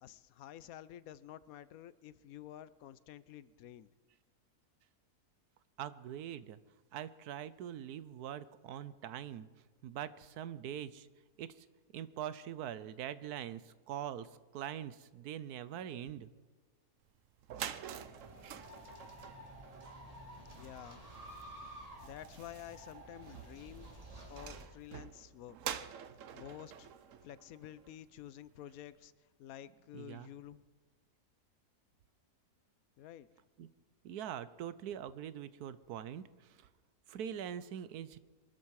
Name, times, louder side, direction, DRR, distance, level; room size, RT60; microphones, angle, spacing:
voice 1, 0.0-3.9 19.3-19.5 20.6-21.1 22.0-23.9 24.3-25.6 26.3-26.9 27.2-29.1 29.4-30.6 33.0-33.3, left 11 dB, 70° left, 17 dB, 1.1 m, -50 dB
voice 2, 5.8-6.6 6.9-9.5 9.8-11.1 11.4-11.7 11.9-16.3 19.8-19.9 29.9-30.3 33.6-33.7 34.0-36.7 37.1-38.2, right 10 dB, 85° right, 15 dB, 1.2 m, -43 dB
sound 1, 17.1-17.2 17.4-28.2, right 9 dB, 65° right, 1.0 m, -48 dB
sound 2, 18.0-24.7, right 1 dB, 25° right, 2.6 m, -52 dB
23.5 x 13.0 x 4.8 m, 1.4 s
omnidirectional pair, 1.6 m